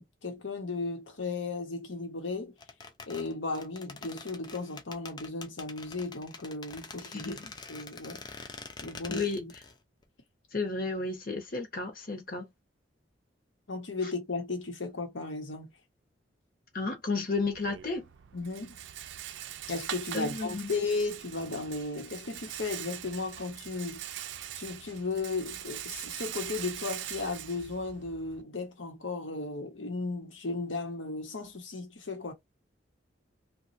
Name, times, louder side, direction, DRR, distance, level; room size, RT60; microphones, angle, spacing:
voice 1, 0.2-2.5 3.1-7.4 7.7-8.2 8.8-9.5 13.7-15.7 18.3-18.8 19.7-24.0 24.6-32.3, left 3 dB, 80° left, 1.0 m, -35 dB
sound 1, 2.6-9.8 10.0-10.1, left 4 dB, 20° left, 0.3 m, -45 dB
voice 2, 7.0-7.5 9.1-9.4 10.5-12.5 14.0-14.1 16.7-18.0 20.1-20.7, left 3 dB, 45° left, 0.9 m, -33 dB
Rattle, 17.4-28.4, right 11 dB, 75° right, 0.4 m, -42 dB
3.0 x 2.3 x 2.5 m
head